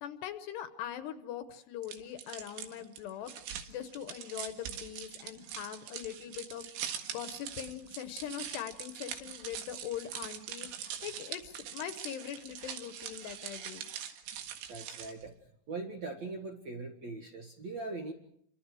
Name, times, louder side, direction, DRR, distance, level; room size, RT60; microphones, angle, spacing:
voice 1, 0.0-3.3 3.7-13.9, left 10 dB, 75° left, 9 dB, 2.8 m, -42 dB
sound 1, 1.8-15.3, right 9 dB, 80° right, 4.1 m, -43 dB
voice 2, 14.7-15.4 15.7-18.1, right 3 dB, 60° right, 2 dB, 1.8 m, -41 dB
30.0 x 25.0 x 4.9 m, 0.70 s
omnidirectional pair, 5.5 m